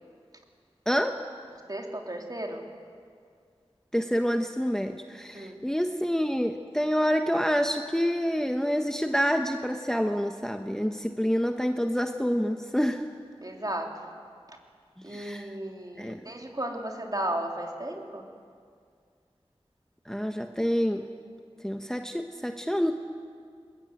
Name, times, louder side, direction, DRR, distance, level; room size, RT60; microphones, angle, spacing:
voice 1, 0.9-1.2 3.9-13.0 15.1-15.5 16.0-16.2 20.1-21.1 21.6-22.9, equal, 5° left, 5 dB, 1.1 m, -27 dB
voice 2, 1.7-2.6 5.3-5.5 13.4-14.1 14.5-14.6 15.0-18.2, right 1 dB, 35° right, 1 dB, 3.3 m, -34 dB
22.0 x 21.5 x 9.3 m, 2.2 s
wide cardioid pair, 40°, 11 cm